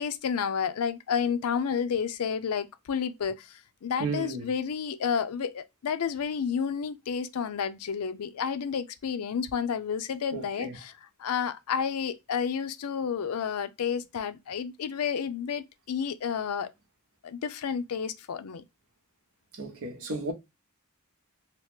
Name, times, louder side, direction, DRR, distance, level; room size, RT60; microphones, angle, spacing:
voice 1, 0.0-10.9 11.2-16.7 17.2-18.6, left 7 dB, 75° left, 0.4 m, -31 dB
voice 2, 4.0-4.5 10.3-10.8 19.5-20.3, right 3 dB, 65° right, 0.8 m, -34 dB
2.9 x 2.3 x 3.4 m
head